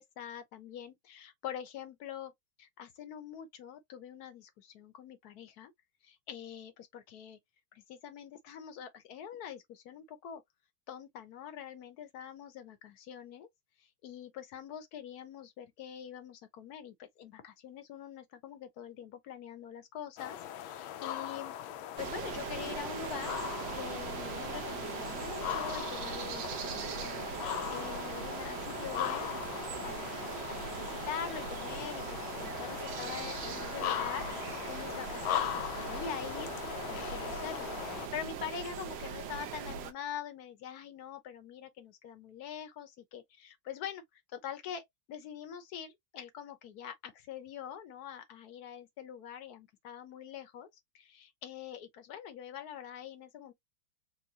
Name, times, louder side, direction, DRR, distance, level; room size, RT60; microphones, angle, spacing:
voice 1, 0.0-2.3 2.6-5.7 6.0-7.4 7.7-10.4 10.9-13.5 14.0-21.6 22.0-23.3 23.7-29.3 29.8-50.7 50.9-53.5, left 9 dB, 60° left, 1.1 m, -44 dB
sound 1, 20.2-38.1, left 11 dB, 75° left, 1.3 m, -39 dB
sound 2, 22.0-39.9, right 7 dB, 65° right, 1.3 m, -40 dB
4.6 x 2.3 x 2.8 m
omnidirectional pair, 2.4 m